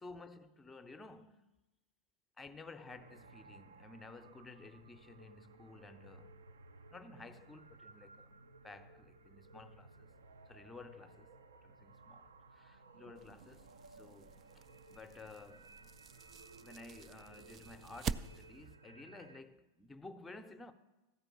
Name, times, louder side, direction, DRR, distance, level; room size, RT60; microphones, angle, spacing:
voice 1, 0.0-1.5 2.4-6.4 6.9-8.3 8.6-10.1 10.5-11.3 11.6-14.6 14.9-15.7 16.6-20.7, left 3 dB, 10° left, 0.6 m, -54 dB
sound 1, 2.9-19.4, right 3 dB, 70° right, 0.6 m, -59 dB
sound 2, 13.2-18.8, right 7 dB, 30° right, 0.3 m, -46 dB
14.0 x 5.1 x 7.4 m
figure-of-eight pair, 90°, 0 cm